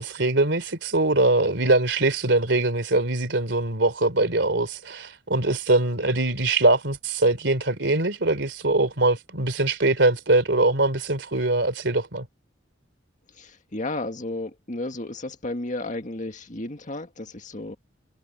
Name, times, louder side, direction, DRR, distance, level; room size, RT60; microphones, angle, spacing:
voice 1, 0.0-12.3, right 2 dB, 70° right, 3.7 m, -22 dB
voice 2, 13.4-17.8, left 2 dB, 40° left, 1.9 m, -33 dB
head